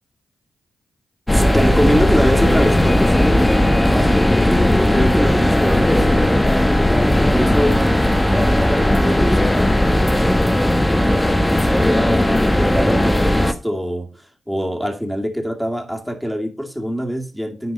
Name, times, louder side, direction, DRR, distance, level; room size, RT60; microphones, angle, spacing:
sound 1, 1.3-13.5, left 1 dB, 15° left, 1.1 m, -16 dB
voice 1, 1.3-4.3 4.9-7.9 8.3-17.7, equal, ahead, 2 dB, 2.3 m, -24 dB
10.5 x 4.6 x 5.3 m, 0.33 s
supercardioid pair, 50°, 0 cm